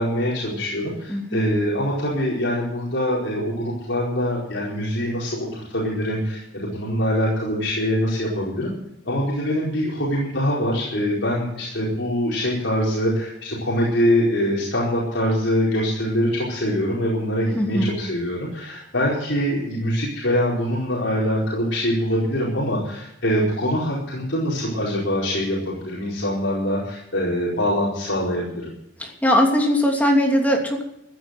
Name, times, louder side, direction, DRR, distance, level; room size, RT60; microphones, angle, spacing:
voice 1, 0.0-8.7 9.1-28.7, equal, 70° left, -5 dB, 4.6 m, -24 dB
voice 2, 1.1-1.4 17.5-17.9 29.0-30.8, equal, 10° left, 0 dB, 2.9 m, -20 dB
15.0 x 10.0 x 7.8 m, 0.80 s
head